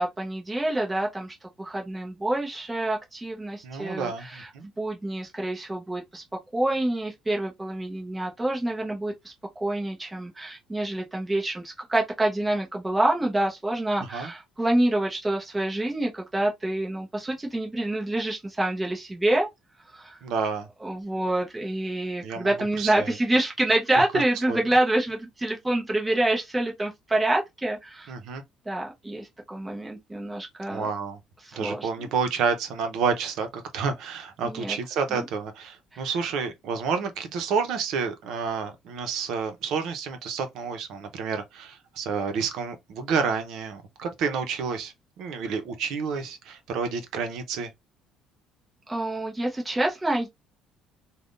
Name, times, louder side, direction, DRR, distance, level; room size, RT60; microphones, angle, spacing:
voice 1, 0.0-4.5 4.8-6.2 6.5-19.5 19.9-20.2 20.8-28.1 28.7-30.9 31.4-32.1 34.4-34.8 35.1-35.2 35.9-36.1 48.9-50.3, right 1 dB, 10° right, 0.9 m, -27 dB
voice 2, 3.6-4.7 14.1-14.3 20.2-20.7 22.2-22.5 22.8-23.1 23.9-24.0 24.5-24.6 28.1-28.4 30.7-31.2 31.6-47.7, right 5 dB, 65° right, 0.8 m, -29 dB
3.4 x 2.3 x 2.6 m
cardioid pair, 125°, 0 cm